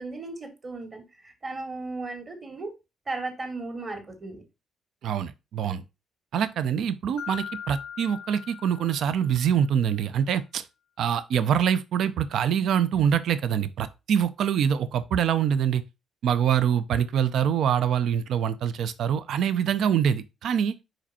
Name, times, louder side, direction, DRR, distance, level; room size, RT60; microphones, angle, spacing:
voice 1, 0.0-2.7 3.1-4.4, right 3 dB, 35° right, 2.1 m, -36 dB
voice 2, 5.0-5.8 6.3-10.7 11.0-15.8 16.2-20.7, right 8 dB, 70° right, 0.5 m, -25 dB
Mallet percussion, 7.2-9.7, left 8 dB, 70° left, 0.4 m, -40 dB
5.0 x 4.5 x 4.2 m
cardioid pair, 90°, 0 cm